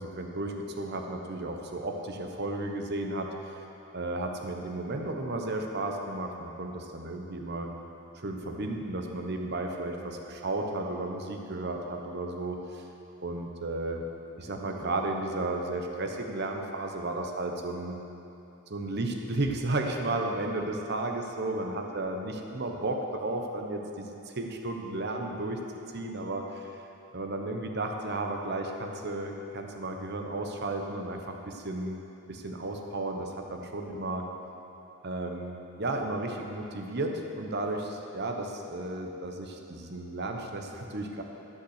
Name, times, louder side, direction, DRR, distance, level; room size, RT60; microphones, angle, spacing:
voice 1, 0.0-3.3 3.9-7.7 8.1-12.8 13.2-14.0 14.4-18.0 18.7-25.6 25.9-26.8 27.1-32.0 32.3-34.3 35.0-41.2, right 2 dB, 55° right, 3 dB, 0.9 m, -33 dB
13.5 x 5.6 x 6.5 m, 2.9 s
head